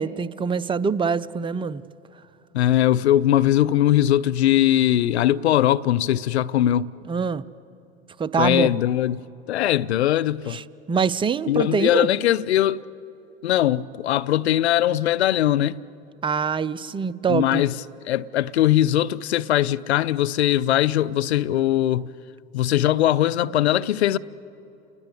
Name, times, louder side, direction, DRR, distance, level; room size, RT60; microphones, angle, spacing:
voice 1, 0.0-1.8 7.1-7.4 8.2-8.7 10.5-12.1 16.2-17.6, right 6 dB, 15° right, 0.6 m, -24 dB
voice 2, 2.5-6.9 8.4-9.2 9.5-10.6 11.5-12.8 13.4-15.8 17.3-17.7 18.1-22.1 22.5-24.2, left 12 dB, 80° left, 0.6 m, -20 dB
29.5 x 20.5 x 8.3 m
hypercardioid pair, 80°, 32 cm